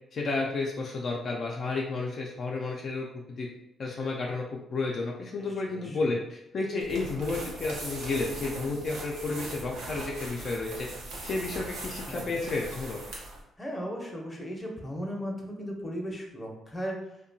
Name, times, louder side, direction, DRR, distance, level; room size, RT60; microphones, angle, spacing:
voice 1, 0.1-3.1 3.4-3.5 3.8-10.9 11.2-13.0, left 3 dB, 55° left, -1 dB, 0.4 m, -31 dB
voice 2, 5.7-6.1 12.1-12.4 13.6-17.0, equal, 20° left, 0 dB, 0.6 m, -36 dB
sound 1, 6.8-13.4, right 2 dB, 85° right, 0.7 m, -40 dB
2.7 x 2.2 x 2.6 m, 0.83 s
cardioid pair, 90°, 0 cm